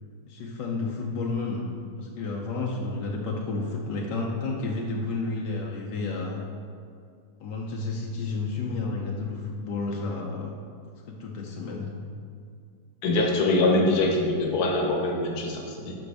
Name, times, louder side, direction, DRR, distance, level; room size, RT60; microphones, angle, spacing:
voice 1, 0.2-1.6 2.0-6.4 7.4-10.5 11.1-11.9, left 3 dB, 80° left, -2 dB, 1.4 m, -31 dB
voice 2, 13.0-15.9, left 2 dB, 65° left, 1 dB, 1.5 m, -23 dB
10.5 x 6.1 x 3.4 m, 2.3 s
omnidirectional pair, 1.8 m